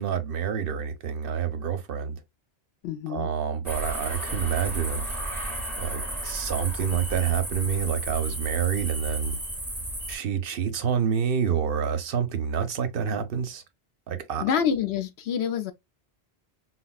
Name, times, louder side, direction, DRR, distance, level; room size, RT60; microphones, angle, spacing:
voice 1, 0.0-2.2 3.1-5.2 5.8-9.4 10.1-13.6 14.1-14.4, right 7 dB, 65° right, 0.7 m, -28 dB
voice 2, 2.8-3.3 14.4-15.7, left 7 dB, 80° left, 0.9 m, -27 dB
sound 1, 3.6-10.2, right 1 dB, ahead, 0.8 m, -33 dB
3.9 x 2.1 x 2.3 m
omnidirectional pair, 1.1 m